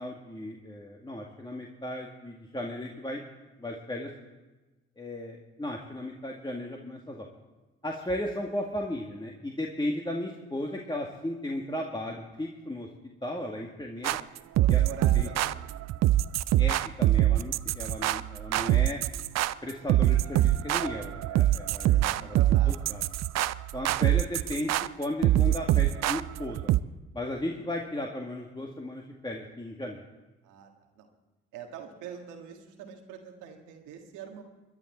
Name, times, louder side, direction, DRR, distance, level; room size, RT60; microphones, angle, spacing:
voice 1, 0.0-3.2 3.6-4.1 5.0-7.3 7.8-12.9 13.2-14.2 14.7-14.8 15.1-15.3 16.6-19.0 19.6-22.4 22.7-23.0 23.7-26.7 27.1-30.0, left 1 dB, 15° left, 0 dB, 2.0 m, -35 dB
sound 1, 14.0-26.8, right 14 dB, 60° right, 0.5 m, -24 dB
voice 2, 14.6-15.9 21.9-22.9 30.4-30.7 31.0-31.1 31.5-34.4, right 8 dB, 80° right, 3 dB, 1.7 m, -44 dB
22.5 x 11.0 x 4.4 m, 1.1 s
hypercardioid pair, 45°, 31 cm